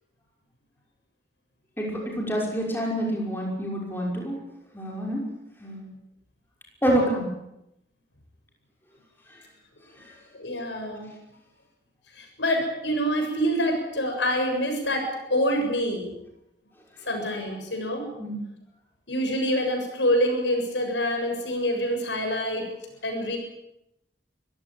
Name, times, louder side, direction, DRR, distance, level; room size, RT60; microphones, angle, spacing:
voice 1, 1.8-4.4 4.7-5.3 5.6-5.9 6.8-7.3 9.3-9.4 10.0-10.1 18.2-18.4, equal, 10° left, -2 dB, 5.9 m, -27 dB
voice 2, 10.3-11.1 12.2-16.1 17.1-18.0 19.1-22.7 23.0-23.4, equal, 85° left, 4 dB, 7.3 m, -26 dB
24.5 x 16.5 x 9.0 m, 0.85 s
head